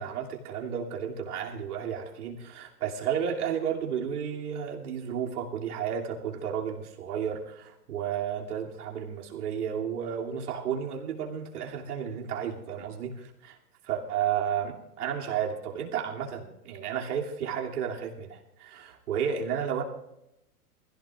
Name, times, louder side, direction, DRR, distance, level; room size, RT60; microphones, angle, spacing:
voice 1, 0.0-13.6 13.8-19.8, right 8 dB, 75° right, -1 dB, 2.9 m, -32 dB
21.5 x 16.0 x 2.5 m, 0.84 s
hypercardioid pair, 135°, 46 cm